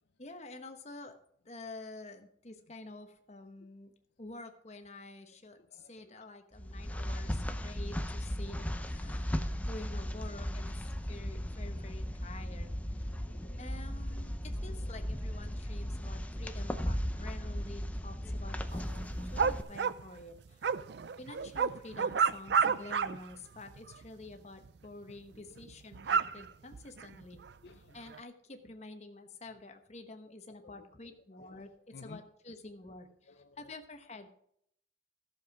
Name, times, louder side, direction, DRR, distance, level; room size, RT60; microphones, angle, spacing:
voice 1, 0.2-1.1 1.4-3.9 4.2-12.7 13.6-19.1 19.3-20.6 21.2-27.4 27.9-34.3, left 2 dB, 35° left, 6 dB, 1.1 m, -49 dB
voice 2, 5.7-6.2 6.7-6.8 8.8-9.2 9.5-9.7 13.1-13.6 14.5-15.0 16.4-16.5 20.8-21.1 25.3-25.7 26.0-26.5 27.6-28.0 30.6-31.6 31.9-32.2 33.3-33.7, left 4 dB, 60° left, 8 dB, 0.5 m, -57 dB
sound 1, 6.5-19.6, equal, 10° left, 0.6 m, -36 dB
sound 2, 18.7-23.3 23.6-24.1 24.6-24.7 25.1-25.2 25.6-27.5 28.1-28.2, right 6 dB, 60° right, 0.4 m, -31 dB
13.5 x 7.1 x 4.8 m, 0.69 s
head